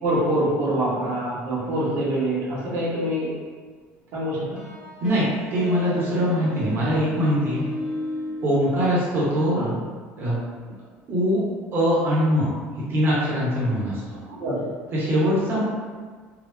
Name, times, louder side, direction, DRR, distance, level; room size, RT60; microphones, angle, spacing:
voice 1, 0.0-3.3 4.1-4.6 9.5-9.8 14.4-14.6, right 1 dB, 75° right, -9 dB, 1.4 m, -25 dB
sound 1, 4.6-9.7, left 1 dB, 15° right, 0.7 m, -34 dB
voice 2, 5.0-7.6 8.4-9.6 10.2-10.4 11.1-11.4 11.7-12.5 12.9-14.0 14.9-15.6, equal, 40° right, -8 dB, 1.2 m, -22 dB
3.7 x 2.3 x 3.3 m, 1.5 s
cardioid pair, 120°, 5 cm